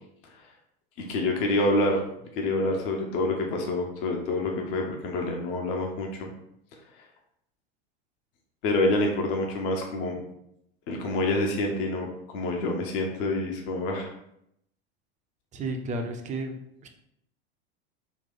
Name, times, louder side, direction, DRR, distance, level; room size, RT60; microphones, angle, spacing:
voice 1, 1.0-2.0 2.3-6.3 6.9-7.0 8.6-10.2 10.9-14.1, left 2 dB, 60° left, 1 dB, 0.9 m, -27 dB
voice 2, 15.5-16.9, right 2 dB, 25° right, 4 dB, 0.6 m, -33 dB
4.0 x 2.3 x 3.9 m, 0.77 s
hypercardioid pair, 85°, 32 cm